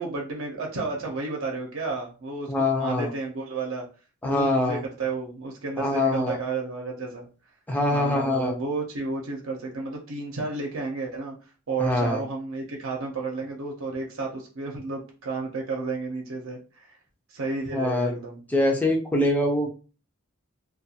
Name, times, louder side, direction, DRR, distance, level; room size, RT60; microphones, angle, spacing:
voice 1, 0.0-3.9 4.2-7.3 7.9-11.4 11.7-17.0 17.3-18.4, right 3 dB, 70° right, 0 dB, 0.6 m, -32 dB
voice 2, 2.5-3.1 4.2-4.8 5.8-6.4 7.7-8.5 11.8-12.2 17.7-18.1 18.5-19.7, left 1 dB, 10° left, 1 dB, 0.5 m, -23 dB
2.3 x 2.2 x 2.7 m, 0.35 s
head